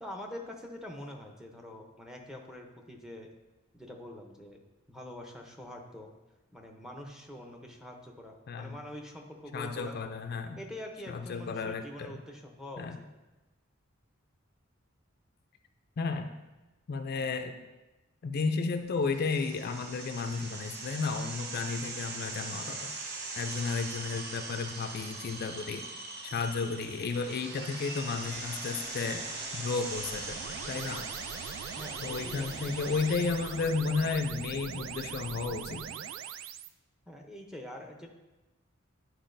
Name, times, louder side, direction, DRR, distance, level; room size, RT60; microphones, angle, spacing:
voice 1, 0.0-3.3 3.7-4.6 4.9-6.1 6.5-10.0 10.6-12.9 31.8-32.8 37.1-38.1, left 1 dB, 5° right, 1 dB, 0.6 m, -45 dB
voice 2, 8.5-8.8 9.5-10.6 11.1-12.2 12.8-13.0 16.0-16.3 16.9-17.6 18.2-22.9 23.4-25.9 26.2-30.4 30.7-31.1 32.0-35.9, left 4 dB, 50° left, 6 dB, 0.4 m, -33 dB
sound 1, 19.1-32.9, right 3 dB, 55° right, 0.8 m, -41 dB
sound 2, 27.5-34.0, equal, 20° right, 1.1 m, -46 dB
sound 3, 29.9-36.7, right 8 dB, 75° right, 0.3 m, -41 dB
10.0 x 4.6 x 2.6 m, 1.1 s
head